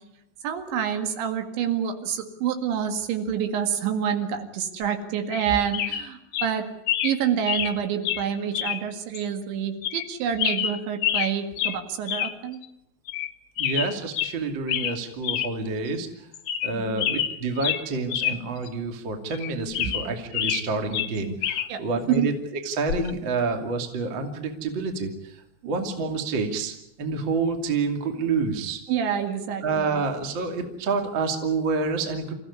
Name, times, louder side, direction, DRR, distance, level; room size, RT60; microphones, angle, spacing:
voice 1, 0.4-6.6 7.0-12.6 16.7-17.1 19.8-19.9 21.7-22.3 25.6-25.8 28.9-29.9, right 8 dB, 70° right, 6 dB, 4.2 m, -27 dB
sound 1, 5.3-5.5 5.7-6.1 6.3-6.5 6.9-7.2 7.5-7.7 8.1-8.2 8.5-8.8 9.1-9.2 9.8-10.1 10.4-11.3 11.6-11.8 12.1-12.3 12.6-12.7 13.1-13.3 13.6-14.3 14.7-15.0 15.2-15.5 15.9-16.0 16.3-16.7 17.0-18.4 18.7-18.8 19.3-20.6 20.9-21.7 22.9-23.1, left 10 dB, 85° left, 1.7 m, -27 dB
voice 2, 13.6-16.1 16.6-28.8 29.6-32.3, right 4 dB, 30° right, 5 dB, 2.5 m, -28 dB
28.0 x 15.5 x 9.8 m, 0.86 s
omnidirectional pair, 5.5 m